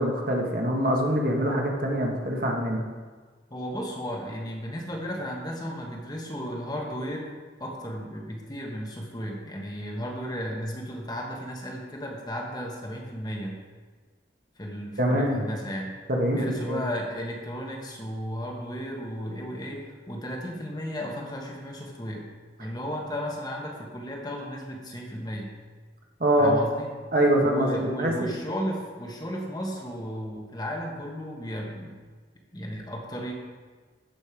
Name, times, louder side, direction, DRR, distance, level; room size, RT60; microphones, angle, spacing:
voice 1, 0.0-2.8 15.0-15.5 16.1-16.8 26.2-26.5 27.1-28.3, right 1 dB, 50° right, 0 dB, 1.5 m, -24 dB
voice 2, 3.5-7.3 7.6-13.6 14.6-16.0 16.3-22.2 22.6-25.5 26.4-26.9 27.4-32.0 32.5-33.3, equal, 20° left, 0 dB, 1.3 m, -34 dB
13.5 x 5.3 x 5.1 m, 1.4 s
head